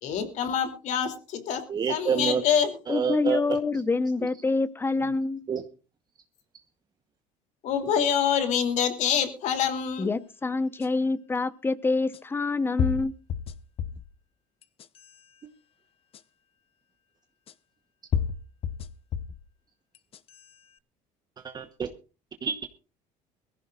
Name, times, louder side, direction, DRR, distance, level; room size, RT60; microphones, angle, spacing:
voice 1, 0.0-2.8 7.6-10.1, left 8 dB, 60° left, 2.9 m, -26 dB
voice 2, 1.7-2.4 2.9-3.4 5.5-5.6 21.4-21.9 22.4-22.6, right 6 dB, 30° right, 1.0 m, -27 dB
voice 3, 2.9-5.4 10.0-13.1, left 3 dB, 15° left, 0.9 m, -26 dB
sound 1, 10.8-10.9 12.1-12.2 12.8-14.1 14.6-15.2 16.1-16.2 17.5-17.6 18.1-19.4 19.9-20.5, left 8 dB, 40° left, 0.7 m, -31 dB
22.0 x 15.0 x 2.4 m
cardioid pair, 135°, 14 cm